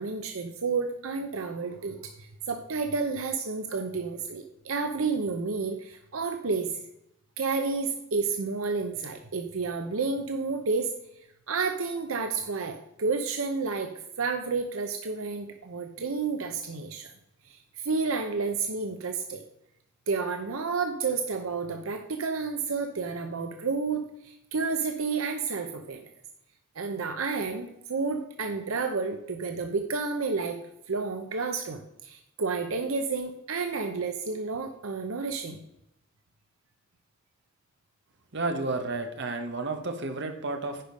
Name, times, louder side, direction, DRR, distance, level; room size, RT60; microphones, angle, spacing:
voice 1, 0.0-6.8 7.4-10.9 11.5-17.1 17.5-19.4 20.1-26.0 26.8-30.6 30.9-35.6, right 4 dB, 85° right, 6 dB, 0.8 m, -30 dB
voice 2, 38.3-40.8, right 3 dB, 60° right, 6 dB, 1.2 m, -31 dB
10.0 x 5.2 x 5.1 m, 0.80 s
head